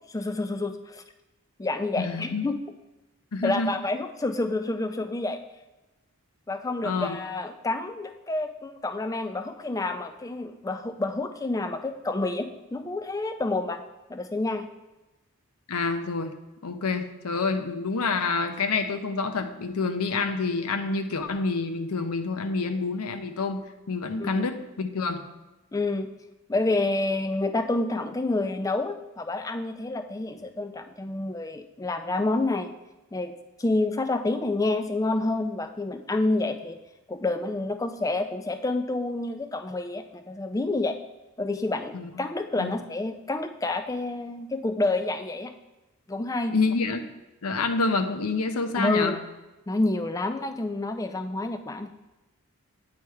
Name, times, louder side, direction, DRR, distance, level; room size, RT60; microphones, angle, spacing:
voice 1, 0.1-1.0 1.6-2.6 3.4-5.4 6.5-13.8 14.1-14.7 24.2-24.5 25.7-26.1 26.5-32.7 33.1-33.3 33.6-36.8 37.1-41.0 41.4-45.5 46.1-46.6 48.8-49.2 49.7-51.9, left 2 dB, 15° left, 8 dB, 0.3 m, -28 dB
voice 2, 2.0-2.5 3.3-3.7 6.8-7.2 15.7-16.4 16.6-25.2 41.9-42.1 42.6-42.7 46.5-47.0 47.4-49.2, left 4 dB, 80° left, 7 dB, 0.6 m, -27 dB
8.5 x 3.2 x 4.6 m, 1.0 s
head